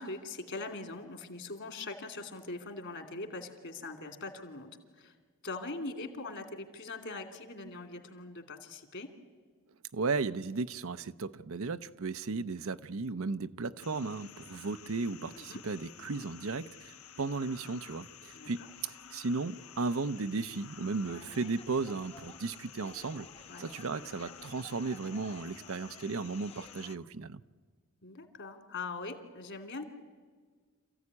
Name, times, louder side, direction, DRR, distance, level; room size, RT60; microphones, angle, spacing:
voice 1, 0.0-5.1 5.4-9.1 15.3-15.6 18.3-18.7 21.1-21.3 23.5-23.7 28.0-29.8, left 3 dB, 60° left, 2.7 m, -42 dB
voice 2, 9.9-23.3 23.6-27.4, right 4 dB, 70° right, 0.7 m, -35 dB
sound 1, 13.8-27.0, left 8 dB, 85° left, 1.0 m, -52 dB
sound 2, 21.0-26.9, left 3 dB, 30° left, 0.9 m, -55 dB
27.0 x 15.0 x 9.8 m
head